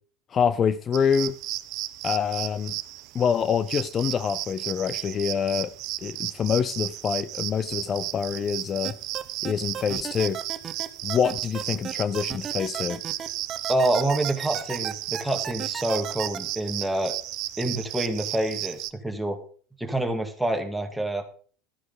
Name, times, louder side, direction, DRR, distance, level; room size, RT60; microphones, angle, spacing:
voice 1, 0.3-1.4 2.0-2.7 3.1-5.7 6.0-8.9 9.4-10.4 11.0-13.0, left 7 dB, 30° left, 0.5 m, -26 dB
sound 1, 0.9-18.9, right 17 dB, 55° right, 0.8 m, -34 dB
sound 2, 8.8-16.4, right 8 dB, 30° right, 1.1 m, -34 dB
voice 2, 13.7-17.2 17.6-19.4 19.8-21.2, right 1 dB, 5° right, 2.1 m, -27 dB
13.0 x 9.8 x 3.9 m
supercardioid pair, 120°, 0 cm